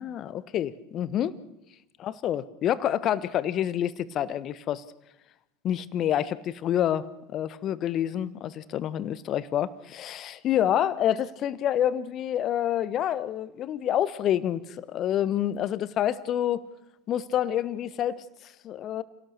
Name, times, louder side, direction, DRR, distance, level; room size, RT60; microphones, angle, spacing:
voice 1, 0.0-1.4 2.0-4.8 5.6-7.1 7.3-16.6 17.1-19.0, left 11 dB, 40° left, 17 dB, 1.2 m, -28 dB
29.5 x 17.5 x 6.6 m, 0.93 s
figure-of-eight pair, 80°, 0 cm